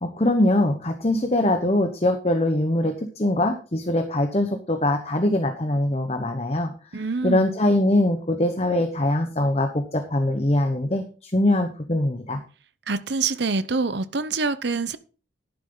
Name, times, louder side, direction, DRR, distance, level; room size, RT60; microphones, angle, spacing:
voice 1, 0.0-6.7 7.2-12.4, left 1 dB, 35° left, 1.1 m, -22 dB
voice 2, 6.9-7.5 12.9-15.0, right 4 dB, 65° right, 0.8 m, -25 dB
11.5 x 10.5 x 3.9 m
head